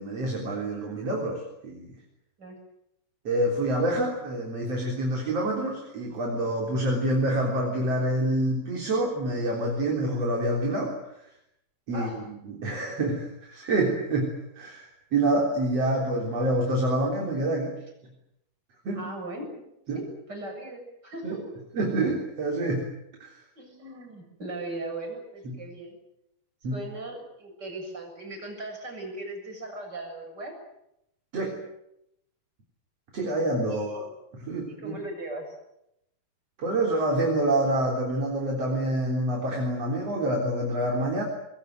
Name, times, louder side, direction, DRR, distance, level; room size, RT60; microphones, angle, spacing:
voice 1, 0.0-2.0 3.2-11.1 11.9-17.7 18.8-19.1 19.9-20.0 21.2-21.4 21.7-22.9 23.2-23.4 25.4-25.6 26.6-26.8 31.3-31.5 33.1-34.1 34.3-35.0 36.6-41.2, right 1 dB, 45° right, 0 dB, 4.6 m, -27 dB
voice 2, 11.9-12.2 19.0-19.6 19.9-21.4 23.6-26.0 26.7-30.6 33.7-34.0 34.8-35.5, right 2 dB, 25° right, 3 dB, 7.8 m, -38 dB
24.0 x 22.0 x 9.2 m, 0.81 s
omnidirectional pair, 4.3 m